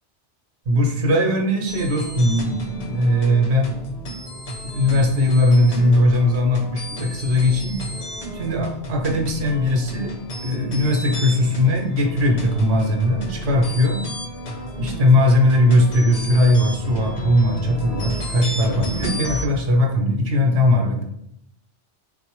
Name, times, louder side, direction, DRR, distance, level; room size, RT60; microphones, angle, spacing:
voice 1, 0.7-3.7 4.6-7.7 8.3-10.1 10.4-14.0 14.8-21.0, left 1 dB, 65° right, 1 dB, 1.0 m, -19 dB
sound 1, 1.7-19.5, equal, 45° left, 0.5 m, -32 dB
4.1 x 2.0 x 3.0 m, 0.76 s
omnidirectional pair, 1.2 m